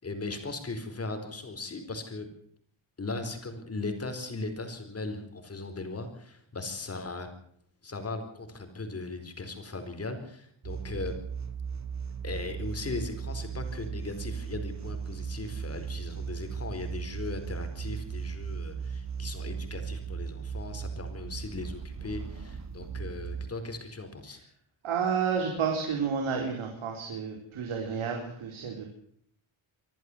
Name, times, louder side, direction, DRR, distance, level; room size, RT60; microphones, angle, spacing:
voice 1, 0.0-2.3 3.0-7.3 7.8-11.2 12.2-24.4, left 3 dB, 30° left, 7 dB, 4.4 m, -38 dB
sound 1, 10.6-23.5, right 6 dB, 35° right, 1.7 m, -37 dB
voice 2, 24.8-28.9, right 6 dB, 75° right, 2 dB, 4.6 m, -30 dB
25.5 x 14.0 x 8.1 m, 0.66 s
wide cardioid pair, 155°, 49 cm